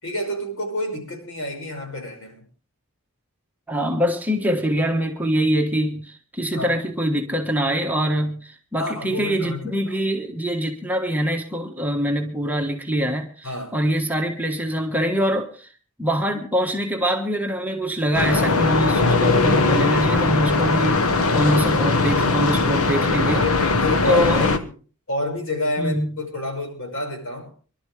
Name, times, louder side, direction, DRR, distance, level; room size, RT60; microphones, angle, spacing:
voice 1, 0.0-2.5 6.5-6.8 8.8-9.9 13.4-13.8 20.1-20.4 23.2-24.7 25.1-27.5, left 1 dB, 70° left, 5.7 m, -29 dB
voice 2, 3.7-15.7 16.0-23.4 24.0-24.5 25.8-26.2, equal, 10° right, 1.4 m, -24 dB
sound 1, 18.1-24.6, left 3 dB, 90° left, 1.2 m, -20 dB
25.0 x 12.0 x 3.3 m
head